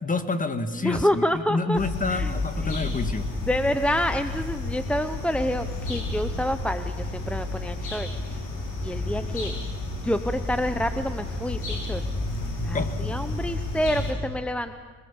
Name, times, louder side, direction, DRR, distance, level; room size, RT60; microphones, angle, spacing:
voice 1, 0.0-3.3 12.7-13.0, left 3 dB, 25° left, 9 dB, 1.9 m, -28 dB
voice 2, 0.7-1.8 2.1-2.3 2.6-3.0 3.5-8.4 8.8-12.0 12.6-14.8, equal, 5° left, 10 dB, 0.9 m, -28 dB
sound 1, 1.8-14.1, left 2 dB, 80° left, 5.9 m, -31 dB
26.0 x 21.0 x 7.3 m, 1.5 s
cardioid pair, 90°, 30 cm